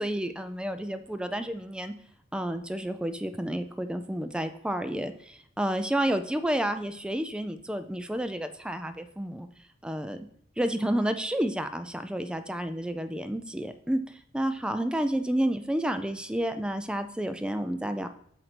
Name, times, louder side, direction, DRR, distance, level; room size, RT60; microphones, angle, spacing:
voice 1, 0.0-1.9 2.3-9.5 9.8-10.2 10.6-14.0 14.3-18.1, right 1 dB, 5° right, 9 dB, 0.3 m, -30 dB
7.6 x 2.6 x 5.9 m, 0.67 s
head